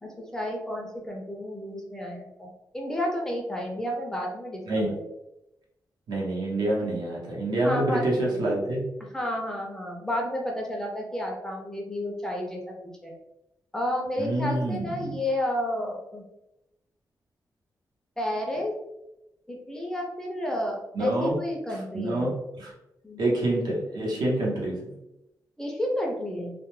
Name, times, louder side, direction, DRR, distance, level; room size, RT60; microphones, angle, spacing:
voice 1, 0.0-4.9 7.6-8.4 9.1-12.7 13.0-13.1 13.7-16.2 18.2-18.7 19.5-22.3 23.0-23.3 25.6-26.5, left 1 dB, 10° left, -1 dB, 0.3 m, -31 dB
voice 2, 6.1-8.8 14.2-15.2 20.9-21.4 21.7-22.7 23.2-24.9, right 1 dB, 75° right, -4 dB, 0.8 m, -27 dB
2.2 x 2.1 x 3.0 m, 0.90 s
wide cardioid pair, 180°, 7 cm